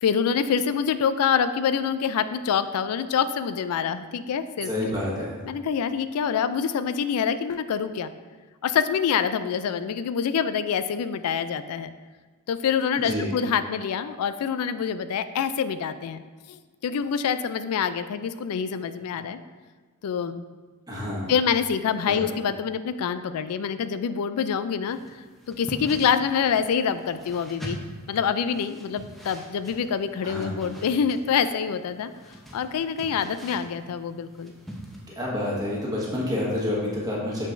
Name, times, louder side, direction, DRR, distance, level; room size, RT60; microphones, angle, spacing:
voice 1, 0.0-4.9 5.4-8.1 8.6-11.9 12.5-16.2 16.5-19.4 20.0-20.4 21.3-25.0 25.5-27.8 28.1-32.1 32.5-34.5, left 7 dB, 80° left, 12 dB, 0.3 m, -26 dB
voice 2, 4.6-5.4 12.9-13.3 20.9-21.3 22.0-22.2 30.2-30.6 35.1-37.5, left 1 dB, 15° right, -5 dB, 1.4 m, -28 dB
sound 1, 24.9-35.1, right 1 dB, ahead, 0.7 m, -43 dB
6.7 x 6.0 x 2.6 m, 1.4 s
head